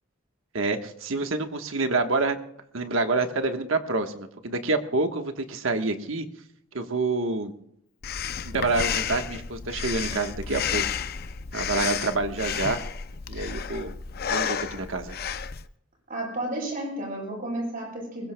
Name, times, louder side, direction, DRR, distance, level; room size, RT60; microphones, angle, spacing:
voice 1, 0.5-2.4 2.7-6.3 6.7-7.5 8.4-10.8 11.5-12.8 13.3-13.9 14.3-15.2, right 3 dB, 80° right, 6 dB, 1.3 m, -27 dB
Breathing, 8.0-15.6, left 7 dB, 50° left, 0.5 m, -31 dB
voice 2, 16.1-18.3, right 1 dB, 45° right, -2 dB, 7.9 m, -32 dB
22.0 x 21.0 x 2.3 m, 0.73 s
head